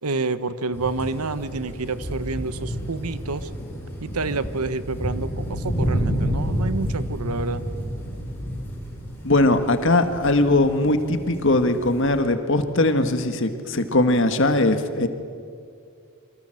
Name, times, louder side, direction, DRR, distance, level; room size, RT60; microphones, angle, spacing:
voice 1, 0.0-3.5 4.0-7.6, right 3 dB, 90° right, 13 dB, 1.1 m, -28 dB
sound 1, 0.7-12.2, equal, 10° left, 5.8 m, -30 dB
voice 2, 9.2-15.1, left 2 dB, 55° left, 8 dB, 1.7 m, -20 dB
28.0 x 24.0 x 7.8 m, 2.3 s
head